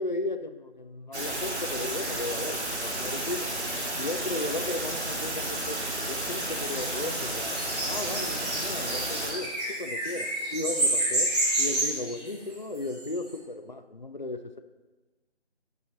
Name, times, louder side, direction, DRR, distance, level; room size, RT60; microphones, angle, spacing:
voice 1, 0.0-3.5 4.0-7.6 7.9-14.6, left 2 dB, 45° left, 8 dB, 0.4 m, -35 dB
sound 1, 1.1-9.3, right 1 dB, 70° right, 2.8 m, -32 dB
sound 2, 6.4-13.1, right 1 dB, 35° right, 2.1 m, -30 dB
10.5 x 4.8 x 4.2 m, 1.2 s
figure-of-eight pair, 165°, 35 cm